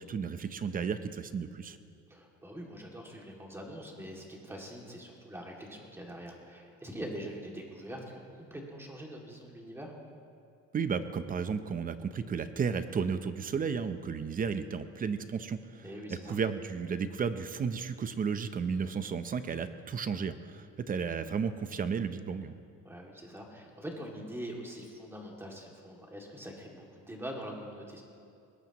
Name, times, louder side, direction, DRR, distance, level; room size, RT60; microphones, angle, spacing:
voice 1, 0.0-1.8 10.7-15.9 16.3-22.5, right 6 dB, 30° right, 11 dB, 0.7 m, -33 dB
voice 2, 2.1-9.9 15.8-16.4 22.8-28.0, equal, 10° right, -1 dB, 2.5 m, -43 dB
21.0 x 19.0 x 3.1 m, 2.5 s
cardioid pair, 135°, 30 cm